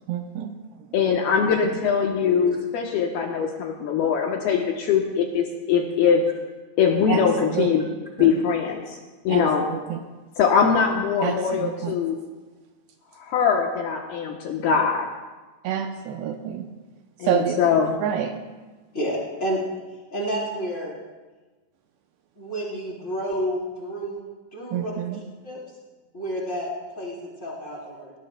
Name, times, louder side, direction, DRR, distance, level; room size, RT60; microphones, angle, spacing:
voice 1, 0.1-0.6 7.1-7.2 7.5-7.7 8.2-8.4 9.3-10.0 11.2-12.0 15.6-16.7 17.2-17.7 18.0-18.5 24.7-25.2, right 9 dB, 80° right, 5 dB, 2.5 m, -28 dB
voice 2, 0.9-6.2 6.8-7.8 8.2-9.0 9.2-9.7 10.4-12.2 13.2-15.1 17.2-17.9, left 6 dB, 75° left, 1 dB, 2.5 m, -22 dB
voice 3, 18.9-19.6 20.1-20.9 22.4-24.2 24.5-25.0 25.4-25.6 26.1-26.7 27.0-27.1 27.4-28.1, equal, 20° left, -5 dB, 3.2 m, -29 dB
20.0 x 18.0 x 2.2 m, 1.2 s
omnidirectional pair, 5.1 m